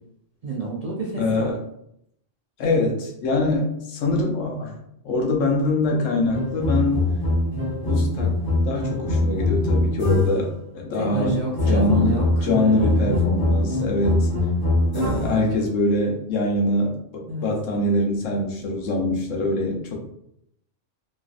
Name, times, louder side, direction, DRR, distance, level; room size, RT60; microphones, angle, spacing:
voice 1, 0.4-1.5 10.9-13.5 17.3-17.5, right 3 dB, 55° right, -5 dB, 0.4 m, -30 dB
voice 2, 1.2-1.6 2.6-4.7 5.0-7.0 7.8-8.3 8.6-11.4 11.7-14.3 14.9-19.9, left 2 dB, 75° left, 0 dB, 1.0 m, -23 dB
sound 1, 6.3-10.6 11.2-15.5, left 1 dB, 20° left, 0.9 m, -23 dB
3.1 x 2.5 x 2.4 m, 0.76 s
omnidirectional pair, 1.3 m